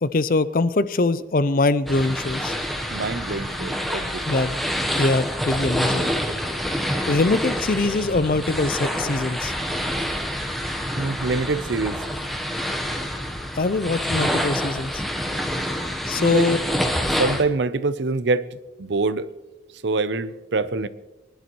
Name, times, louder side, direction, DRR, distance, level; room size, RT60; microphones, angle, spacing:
voice 1, 0.0-2.6 4.3-4.6 5.0-6.0 7.1-9.5 13.6-15.0 16.1-16.6, left 3 dB, 50° left, 0.5 m, -22 dB
sound 1, 1.9-17.4, equal, ahead, 0.9 m, -27 dB
voice 2, 2.9-4.4 11.0-12.0 12.9-13.1 16.1-16.5 17.2-19.3 19.8-20.9, right 3 dB, 75° right, 0.6 m, -25 dB
23.5 x 11.0 x 3.1 m
head